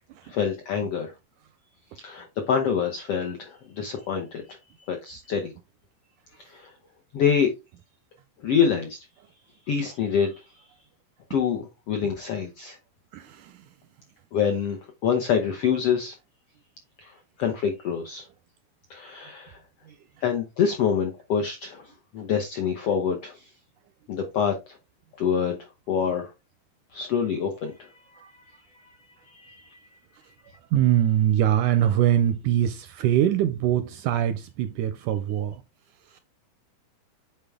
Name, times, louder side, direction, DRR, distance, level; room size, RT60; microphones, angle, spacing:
voice 1, 0.2-1.1 2.0-5.5 6.4-6.7 7.1-7.5 8.4-9.0 9.7-10.4 11.3-12.8 14.3-14.8 15.0-16.1 17.0-18.2 18.9-19.6 20.2-21.8 22.1-23.4 24.1-24.7 25.2-26.3 26.9-27.9 29.3-29.8, left 7 dB, 75° left, 1.3 m, -26 dB
voice 2, 13.1-13.7 19.9-20.0 28.2-28.3 30.7-35.6 36.0-36.2, right 11 dB, 85° right, 1.8 m, -23 dB
8.8 x 4.5 x 3.5 m
omnidirectional pair, 4.0 m